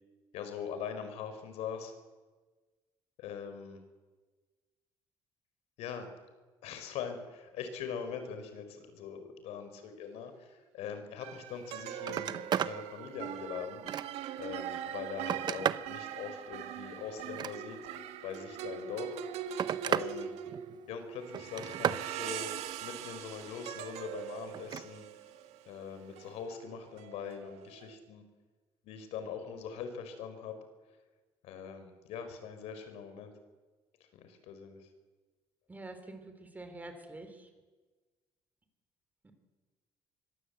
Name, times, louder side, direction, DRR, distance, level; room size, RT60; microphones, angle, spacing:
voice 1, 0.3-1.9 3.2-3.8 5.8-6.1 6.6-13.8 14.4-17.8 18.2-19.2 19.5-20.3 20.9-25.1 25.7-28.2 28.8-30.6 31.4-33.3 34.1-34.9, left 7 dB, 90° left, 8 dB, 4.4 m, -42 dB
sound 1, 10.1-10.3 11.2-27.9, right 10 dB, 90° right, 1.8 m, -42 dB
Telephone, 11.5-11.7 12.0-12.8 13.3-14.3 14.9-15.9 17.2-18.0 19.0-20.1 20.5-20.9 21.3-22.1 24.5-24.9 26.3-26.4, right 9 dB, 45° right, 0.8 m, -34 dB
voice 2, 35.7-37.5 39.2-39.3, right 2 dB, 15° right, 7 dB, 3.9 m, -46 dB
25.0 x 22.0 x 8.1 m, 1.3 s
cardioid pair, 150°, 11 cm